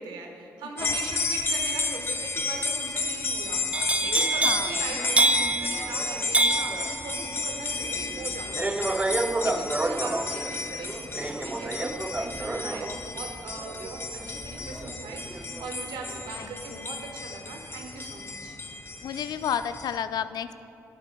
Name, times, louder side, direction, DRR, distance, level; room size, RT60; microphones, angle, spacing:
voice 1, 0.0-8.5 8.9-18.6, right 3 dB, 75° right, 2 dB, 1.0 m, -40 dB
sound 1, 0.8-20.0, left 3 dB, 30° left, 0.8 m, -33 dB
sound 2, 3.7-15.7 16.0-16.5, right 2 dB, 15° right, 0.4 m, -28 dB
voice 2, 16.4-16.9 19.0-20.6, left 8 dB, 60° left, 12 dB, 0.3 m, -32 dB
12.0 x 8.4 x 2.3 m, 2.7 s
hypercardioid pair, 45°, 8 cm